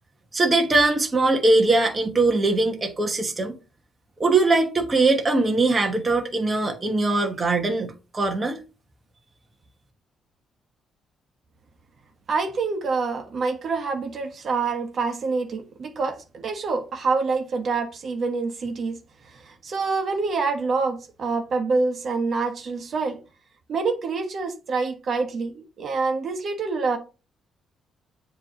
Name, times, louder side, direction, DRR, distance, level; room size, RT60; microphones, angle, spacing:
voice 1, 0.3-3.6 4.2-8.6, right 3 dB, 25° right, 1.2 m, -21 dB
voice 2, 12.3-19.0 19.3-23.2 23.7-27.0, right 4 dB, 50° right, 1.3 m, -26 dB
7.4 x 3.2 x 5.2 m
cardioid pair, 90°, 0 cm